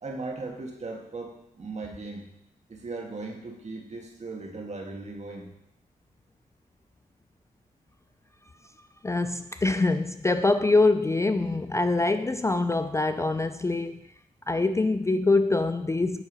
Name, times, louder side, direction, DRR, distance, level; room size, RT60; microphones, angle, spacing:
voice 1, 0.0-2.3 2.7-5.5, right 3 dB, 45° right, 1 dB, 1.9 m, -38 dB
voice 2, 9.0-14.0 14.5-16.2, left 3 dB, 20° left, 10 dB, 0.3 m, -24 dB
9.7 x 5.4 x 5.4 m, 0.79 s
cardioid pair, 90°, 16 cm